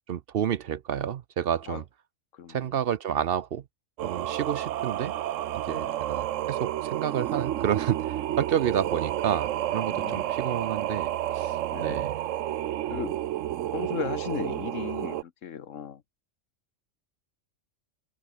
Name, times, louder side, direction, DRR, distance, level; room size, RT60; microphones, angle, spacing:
voice 1, 0.1-1.8 2.5-3.6 4.0-5.1 5.5-12.2, right 9 dB, 60° right, 0.7 m, -30 dB
voice 2, 2.3-2.7 5.7-6.0 9.9-10.3 11.7-12.1 12.9-13.2 13.7-16.0, left 8 dB, 90° left, 1.5 m, -36 dB
Singing, 4.0-15.2, right 12 dB, 90° right, 1.0 m, -30 dB
omnidirectional pair, 1.3 m